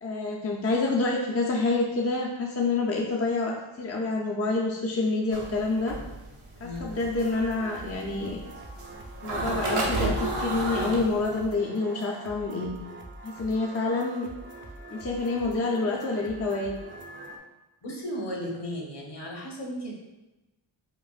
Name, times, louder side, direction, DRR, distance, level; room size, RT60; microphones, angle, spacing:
voice 1, 0.0-6.0 6.6-8.4 9.2-12.8 13.2-14.3 14.9-16.8, left 3 dB, 30° left, -2 dB, 0.5 m, -27 dB
sound 1, 5.3-11.4, right 2 dB, 85° right, 0.9 m, -30 dB
sound 2, 6.7-17.4, right 2 dB, 25° right, 0.5 m, -44 dB
voice 2, 17.8-19.9, equal, 55° left, -2 dB, 1.1 m, -35 dB
5.2 x 2.5 x 2.4 m, 1.0 s
cardioid pair, 70°, 49 cm